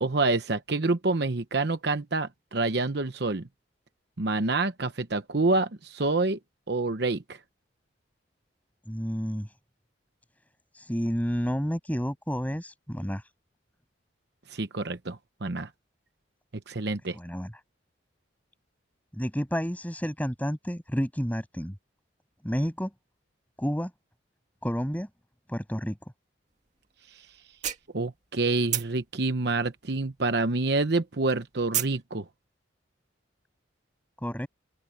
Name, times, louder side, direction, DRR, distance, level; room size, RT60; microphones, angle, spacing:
voice 1, 0.0-3.4 4.2-6.4 6.7-7.4 14.5-15.7 16.7-17.2 27.9-32.2, right 3 dB, 60° right, 1.0 m, -27 dB
voice 2, 8.9-9.5 10.8-13.2 17.1-17.5 19.1-21.8 22.4-22.9 23.6-23.9 24.6-25.1 25.5-26.0 34.2-34.5, equal, 10° left, 7.2 m, -30 dB
sound 1, 26.8-26.9 27.3-28.4 28.7-30.6 30.8-32.0, right 10 dB, 40° right, 2.3 m, -31 dB
open air
head